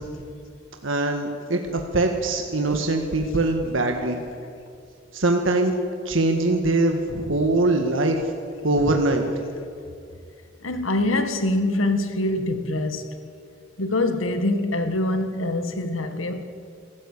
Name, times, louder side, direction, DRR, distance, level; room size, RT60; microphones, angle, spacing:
voice 1, 0.8-4.2 5.1-5.8 6.0-8.2 8.6-9.3, right 2 dB, 75° right, 1.7 m, -22 dB
voice 2, 10.6-13.2 13.8-16.4, left 2 dB, 90° left, 1.8 m, -24 dB
26.0 x 14.0 x 8.4 m
head